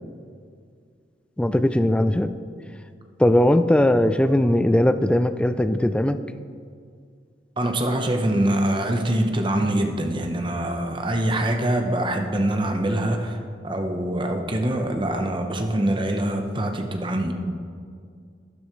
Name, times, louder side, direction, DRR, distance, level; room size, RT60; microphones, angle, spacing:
voice 1, 1.4-2.3 3.2-6.2, left 1 dB, 5° left, 11 dB, 0.3 m, -19 dB
voice 2, 7.6-17.3, right 1 dB, 25° right, 4 dB, 0.9 m, -24 dB
12.5 x 10.5 x 3.1 m, 2.2 s
head